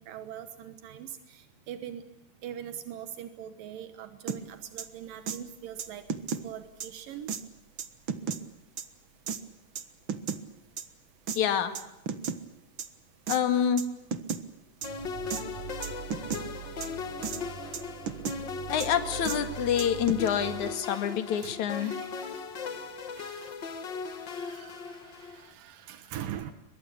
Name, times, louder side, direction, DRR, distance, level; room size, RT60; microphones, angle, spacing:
voice 1, 0.0-2.0 2.4-6.0 6.4-7.3 21.4-22.4 23.2-23.5 24.0-26.5, right 10 dB, 85° right, 9 dB, 3.0 m, -42 dB
sound 1, 4.3-4.4 4.8-4.9 5.3-5.4 5.8-6.4 6.8-6.9 7.3-7.4 7.8-8.4 8.8-8.9 9.3-9.4 9.8-10.4 10.8-10.9 11.3-11.4 11.7-12.4 12.8-12.9 13.3-13.4 13.8-13.9 14.1-14.4 14.8-14.9 15.3-15.4 15.8-16.4 16.8-16.9 17.2-17.4 17.7-18.4 18.8-18.9 19.2-19.4 19.8-20.3, right 6 dB, 50° right, 1.6 m, -33 dB
voice 2, 11.4-11.7 13.3-13.8 18.7-21.9, left 9 dB, 65° left, 9 dB, 3.1 m, -27 dB
sound 2, 14.8-25.5, left 5 dB, 45° left, 1.8 m, -38 dB
sound 3, 14.8-20.7, right 9 dB, 70° right, 1.5 m, -43 dB
23.5 x 22.0 x 8.5 m, 0.94 s
omnidirectional pair, 3.8 m